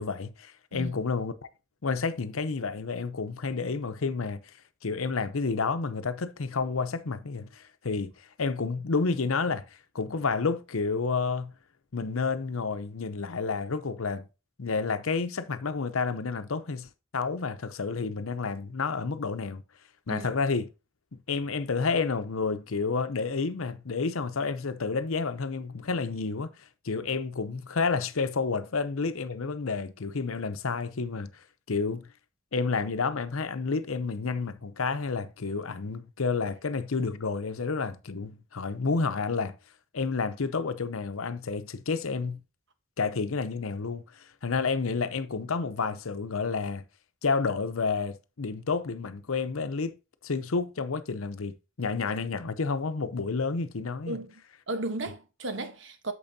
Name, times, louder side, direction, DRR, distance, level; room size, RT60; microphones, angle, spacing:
voice 1, 0.0-1.3 1.8-4.4 4.8-8.1 8.4-9.7 9.9-11.5 11.9-14.2 14.6-19.6 20.1-20.7 21.1-26.5 26.8-31.3 31.7-32.1 32.5-39.6 39.9-42.4 43.0-46.8 47.2-49.9 50.2-54.2, left 4 dB, 85° left, 0.8 m, -30 dB
voice 2, 54.7-56.1, right 2 dB, 65° right, 1.2 m, -34 dB
8.8 x 6.9 x 2.8 m
head